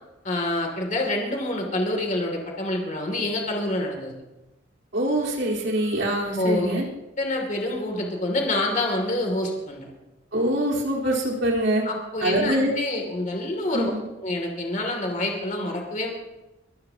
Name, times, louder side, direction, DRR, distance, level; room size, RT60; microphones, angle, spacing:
voice 1, 0.2-4.1 6.4-6.8 7.2-9.9 11.8-13.9 14.2-16.1, left 1 dB, 45° left, 1 dB, 2.8 m, -27 dB
voice 2, 4.9-6.9 10.3-11.8 12.2-12.7 13.7-14.0, right 1 dB, 85° right, -3 dB, 4.1 m, -24 dB
24.0 x 14.5 x 2.9 m, 1.0 s
head